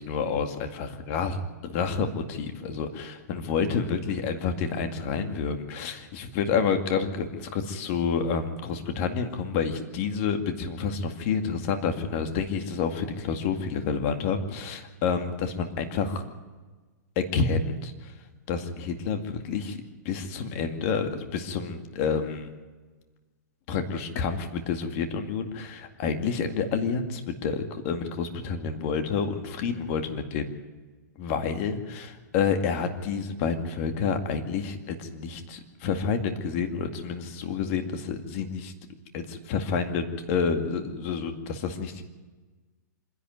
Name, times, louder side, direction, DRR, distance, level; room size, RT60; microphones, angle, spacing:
voice 1, 0.0-16.2 17.2-17.9 18.5-19.8 20.1-22.5 23.7-30.5 31.2-38.7 39.1-42.0, left 5 dB, 40° left, 6 dB, 2.1 m, -29 dB
26.0 x 11.0 x 9.4 m, 1.3 s
hypercardioid pair, 150°, 10 cm